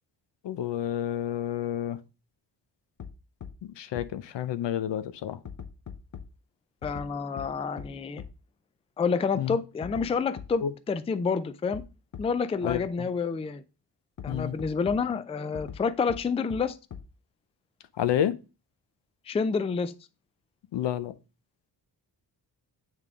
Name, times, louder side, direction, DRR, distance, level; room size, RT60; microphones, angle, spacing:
voice 1, 0.4-2.0 3.6-5.4 9.4-9.6 10.6-10.7 12.6-13.1 14.3-14.5 18.0-18.3 20.7-21.1, left 10 dB, 75° left, 0.7 m, -29 dB
sound 1, 3.0-3.1 3.4-3.5 4.0-4.1 5.5-6.2 6.8-7.1 7.4-7.5 7.8-7.9 8.2-8.3 9.8-10.1 10.4-10.5 11.7-11.8 12.1-12.2 12.7-12.8 14.2-15.0 15.5-15.8 16.1-16.2 16.5-16.6 16.9-17.0, left 8 dB, 45° left, 0.8 m, -39 dB
voice 2, 6.8-8.2 9.0-11.8 12.2-13.6 14.2-16.8 19.3-19.9, left 5 dB, 15° left, 0.3 m, -28 dB
8.9 x 3.6 x 3.5 m
wide cardioid pair, 120°, 42 cm